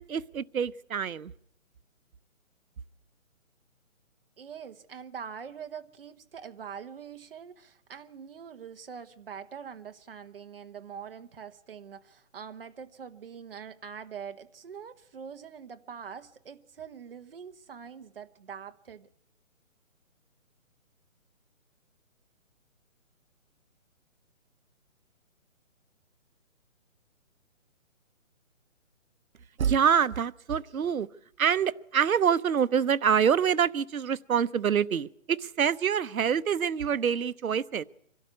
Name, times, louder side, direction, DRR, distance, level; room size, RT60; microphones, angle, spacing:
voice 1, 0.0-1.3 29.6-31.1 31.4-37.8, right 7 dB, 85° right, 0.9 m, -26 dB
voice 2, 4.4-19.1, right 7 dB, 45° right, 1.2 m, -44 dB
24.5 x 12.5 x 9.4 m
hypercardioid pair, 165°, 41 cm